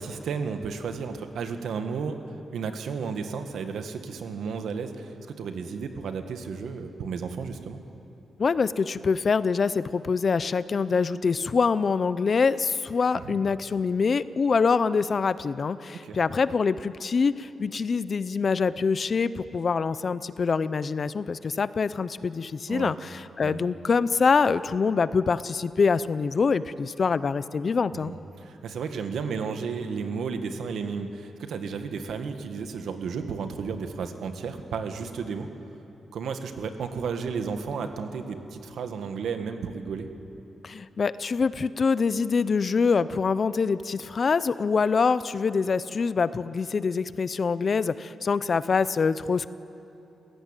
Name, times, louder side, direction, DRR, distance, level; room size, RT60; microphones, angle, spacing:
voice 1, 0.0-2.2 2.5-7.8 13.1-13.4 16.0-16.2 22.7-22.9 23.4-23.6 27.9-35.5 36.1-40.1, right 5 dB, 80° right, 7 dB, 1.8 m, -33 dB
voice 2, 8.4-28.1 40.6-49.5, left 5 dB, 35° left, 15 dB, 0.5 m, -25 dB
29.0 x 16.5 x 9.0 m, 2.9 s
wide cardioid pair, 165°, 0 cm